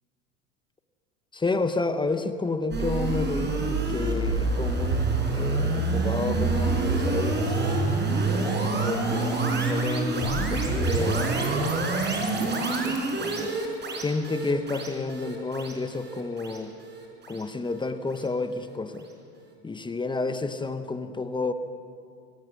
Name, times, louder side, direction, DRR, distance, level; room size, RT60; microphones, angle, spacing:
voice 1, 1.3-7.8 8.6-11.2 12.2-13.6 14.0-16.7 17.3-19.0 19.6-21.5, left 3 dB, 10° left, 10 dB, 1.0 m, -30 dB
sound 1, 2.7-17.9, right 3 dB, 25° right, 4.8 m, -27 dB
25.5 x 18.0 x 6.2 m, 2.4 s
hypercardioid pair, 95°, 40 cm